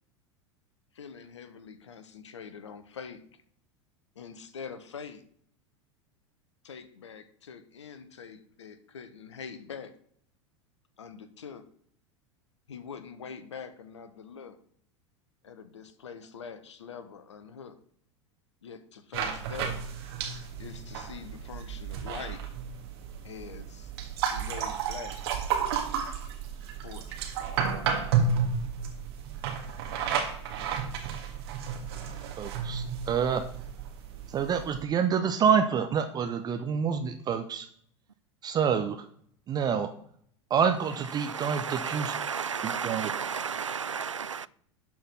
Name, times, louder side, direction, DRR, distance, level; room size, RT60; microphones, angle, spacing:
voice 1, 0.9-3.2 4.1-5.2 6.6-9.9 11.0-11.6 12.7-14.6 15.4-17.8 18.6-19.8 20.6-22.4 23.2-23.9 24.3-25.2 26.8-27.2, left 6 dB, 70° left, 1.1 m, -44 dB
sound 1, 19.1-34.8, right 6 dB, 55° right, 1.7 m, -32 dB
voice 2, 32.4-33.4 34.3-37.7 38.4-39.1 39.5-39.9 40.5-42.1 42.6-43.1, right 7 dB, 25° right, 0.7 m, -27 dB
voice 3, 41.2-44.5, right 6 dB, 80° right, 0.4 m, -33 dB
11.5 x 4.7 x 5.9 m
figure-of-eight pair, 85°, 16 cm